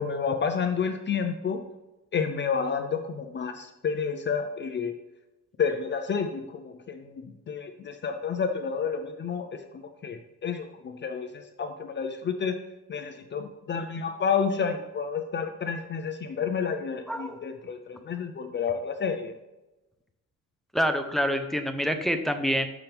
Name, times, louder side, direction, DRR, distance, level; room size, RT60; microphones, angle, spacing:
voice 1, 0.0-1.6 2.1-4.9 5.6-12.5 12.9-19.3, left 6 dB, 35° left, 6 dB, 0.6 m, -30 dB
voice 2, 17.1-17.4 20.7-22.7, equal, ahead, 7 dB, 0.7 m, -26 dB
13.5 x 6.0 x 3.5 m, 1.0 s
cardioid pair, 155°, 31 cm